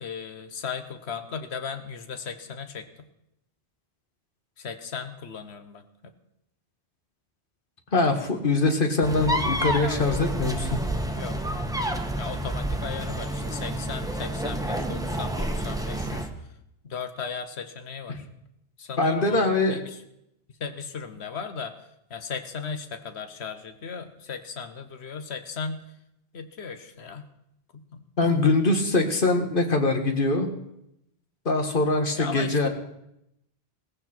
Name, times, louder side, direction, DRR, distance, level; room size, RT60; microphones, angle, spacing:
voice 1, 0.0-3.1 4.6-5.8 11.2-11.5 12.2-16.3 16.8-18.3 18.8-20.0 20.6-25.8 26.3-27.3 27.7-28.5 32.1-32.7, left 5 dB, 85° left, 9 dB, 1.3 m, -36 dB
voice 2, 7.9-10.8 18.1-18.2 19.0-19.8 28.2-30.5 31.5-32.7, left 2 dB, 55° left, 5 dB, 1.9 m, -23 dB
sound 1, 9.0-16.3, right 1 dB, 5° right, 1.2 m, -29 dB
17.5 x 15.5 x 4.5 m, 0.80 s
omnidirectional pair, 1.1 m